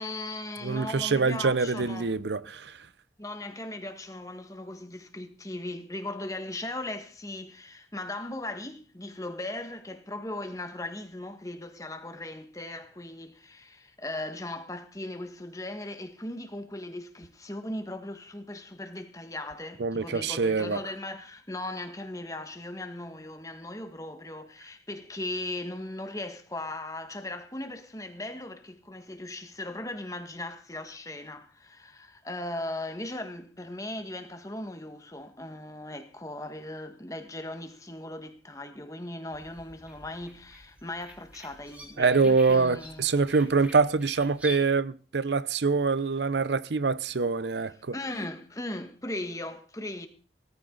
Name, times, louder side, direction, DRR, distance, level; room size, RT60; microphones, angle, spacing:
voice 1, 0.0-2.1 3.2-43.1 47.9-50.1, left 1 dB, 20° left, 1.6 m, -38 dB
voice 2, 0.6-2.8 19.8-20.8 42.0-47.9, right 4 dB, 80° right, 0.6 m, -25 dB
sound 1, 39.3-44.6, equal, 10° right, 3.4 m, -46 dB
17.5 x 14.5 x 4.0 m
head